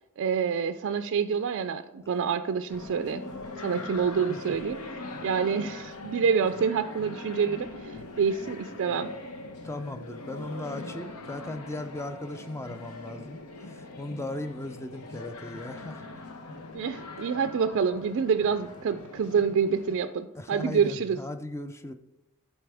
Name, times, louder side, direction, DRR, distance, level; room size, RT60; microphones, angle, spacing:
voice 1, 0.2-3.2 3.6-4.8 5.2-9.1 16.7-21.2, right 6 dB, 55° right, 8 dB, 0.3 m, -27 dB
sound 1, 2.7-20.0, left 2 dB, 90° left, 0.9 m, -42 dB
voice 2, 9.6-16.0 20.3-21.9, left 1 dB, 10° left, 9 dB, 0.4 m, -37 dB
11.0 x 4.3 x 3.4 m, 1.0 s
head